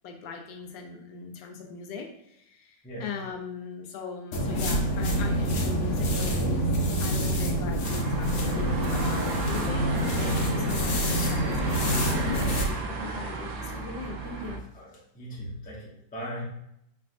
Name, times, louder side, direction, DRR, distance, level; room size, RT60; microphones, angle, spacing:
voice 1, 0.0-6.7 7.0-14.6, left 5 dB, 80° left, 3 dB, 1.2 m, -40 dB
sound 1, 4.3-12.7, equal, 60° left, 0.8 m, -26 dB
sound 2, 7.8-14.6, right 3 dB, 80° right, 1.4 m, -34 dB
voice 2, 14.7-16.4, equal, 10° left, -5 dB, 0.4 m, -39 dB
4.6 x 3.3 x 2.5 m, 0.77 s
omnidirectional pair, 2.1 m